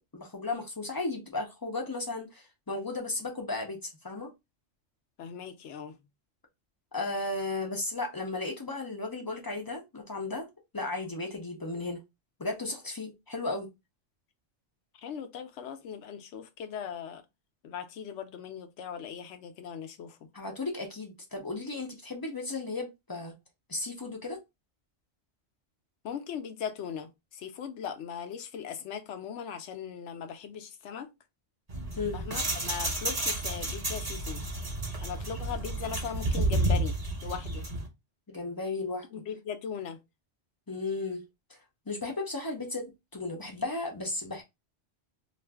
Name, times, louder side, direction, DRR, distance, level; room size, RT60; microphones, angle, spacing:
voice 1, 0.1-4.3 6.9-10.5 10.7-12.0 12.4-13.7 20.3-23.3 23.7-24.4 32.0-32.2 38.3-39.1 40.7-41.2 41.5-41.6 41.9-44.4, left 3 dB, 30° left, 0.4 m, -35 dB
voice 2, 5.2-6.0 15.0-17.2 17.6-20.3 26.0-31.1 32.1-34.4 35.0-37.7 39.1-40.0, left 7 dB, 80° left, 0.9 m, -39 dB
shaking chain link fence vibration, 31.7-37.9, right 1 dB, 35° right, 1.0 m, -31 dB
2.4 x 2.3 x 3.3 m
omnidirectional pair, 1.2 m